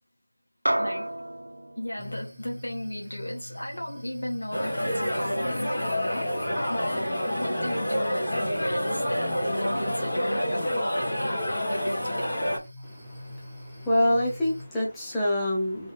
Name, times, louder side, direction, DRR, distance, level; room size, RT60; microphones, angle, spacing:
sound 1, 0.7-5.3, right 1 dB, 85° right, 0.8 m, -34 dB
voice 1, 0.8-1.1 1.8-12.5, left 1 dB, 75° left, 2.0 m, -36 dB
sound 2, 2.0-14.6, left 1 dB, 10° right, 0.9 m, -43 dB
sound 3, 4.5-12.6, equal, 30° left, 1.7 m, -28 dB
voice 2, 12.9-15.9, left 1 dB, 5° left, 0.5 m, -26 dB
3.9 x 3.8 x 3.1 m
figure-of-eight pair, 175°, 0 cm